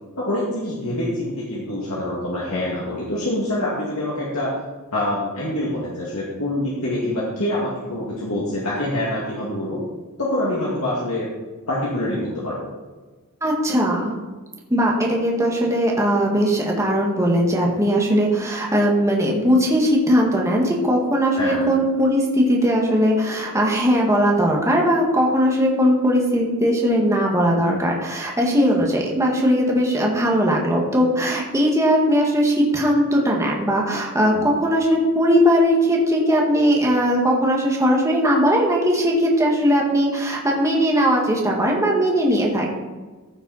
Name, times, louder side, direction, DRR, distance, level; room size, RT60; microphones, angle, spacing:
voice 1, 0.2-4.5 4.9-9.8 10.2-11.3 11.7-12.7 21.4-21.7 28.7-28.8 34.3-34.5, left 1 dB, 75° left, -6 dB, 2.1 m, -25 dB
voice 2, 13.4-14.1 14.7-42.7, equal, 15° right, -2 dB, 1.8 m, -19 dB
15.5 x 5.9 x 4.2 m, 1.3 s
head